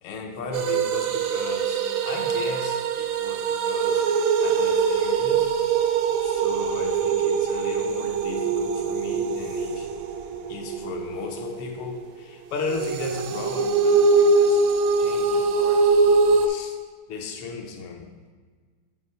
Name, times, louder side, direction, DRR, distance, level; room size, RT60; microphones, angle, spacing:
voice 1, 0.0-4.1 4.4-5.5 6.2-9.9 10.5-14.6 15.0-16.2 16.4-16.8 17.1-18.1, left 4 dB, 80° left, 2 dB, 1.7 m, -36 dB
sound 1, 0.5-12.0 12.7-16.5, right 4 dB, 75° right, 1.2 m, -23 dB
7.3 x 3.3 x 5.4 m, 1.5 s
omnidirectional pair, 2.4 m